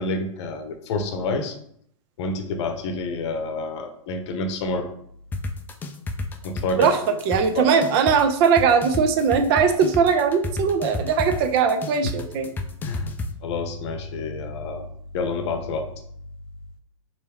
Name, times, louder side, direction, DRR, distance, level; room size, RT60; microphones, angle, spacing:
voice 1, 0.0-1.6 2.2-4.9 6.4-6.9 7.5-7.6 12.8-13.1 13.4-14.9 15.1-15.9, left 3 dB, 50° left, 6 dB, 0.8 m, -28 dB
sound 1, 5.3-13.3, left 2 dB, 10° left, 0.3 m, -30 dB
voice 2, 6.8-12.5, right 6 dB, 45° right, 7 dB, 0.6 m, -20 dB
4.4 x 2.6 x 3.4 m, 0.68 s
hypercardioid pair, 115°, 18 cm